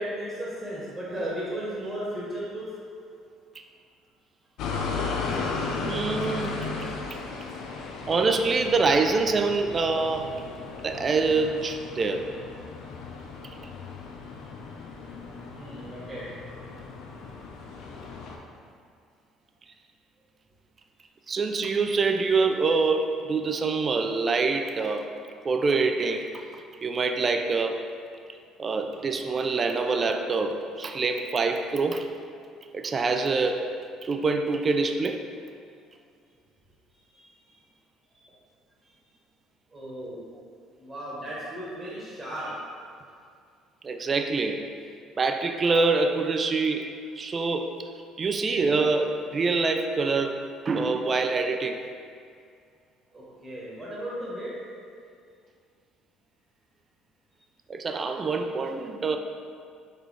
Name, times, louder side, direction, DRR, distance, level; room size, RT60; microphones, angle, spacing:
voice 1, 0.0-2.7 15.6-16.3 37.1-37.3 38.1-38.2 38.8-38.9 39.7-40.2 40.7-42.6 53.1-54.5, right 1 dB, 20° right, -8 dB, 1.3 m, -35 dB
sound 1, 4.6-18.4, left 4 dB, 70° left, 0.5 m, -35 dB
voice 2, 5.8-6.7 7.1-7.2 8.1-10.3 10.8-12.3 21.3-25.1 25.4-27.9 28.6-32.1 32.7-33.7 34.0-35.2 43.8-44.7 45.2-46.9 47.2-47.8 48.2-50.4 50.7-51.8 57.7-59.2, right 4 dB, 35° right, 5 dB, 0.3 m, -25 dB
4.0 x 3.2 x 3.2 m, 2.3 s
supercardioid pair, 75°, 0 cm